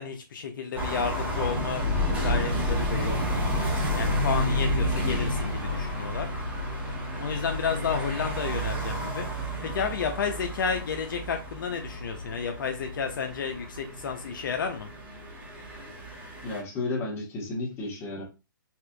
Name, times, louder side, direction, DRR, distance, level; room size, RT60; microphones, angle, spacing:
voice 1, 0.0-1.8 2.2-3.2 3.9-6.3 7.2-14.9, left 6 dB, 65° left, 4 dB, 0.6 m, -31 dB
sound 1, 0.7-16.6, equal, 10° right, 0.9 m, -30 dB
voice 2, 16.4-18.2, left 2 dB, 20° left, -2 dB, 1.2 m, -32 dB
4.2 x 2.4 x 2.2 m, 0.29 s
hypercardioid pair, 145°, 12 cm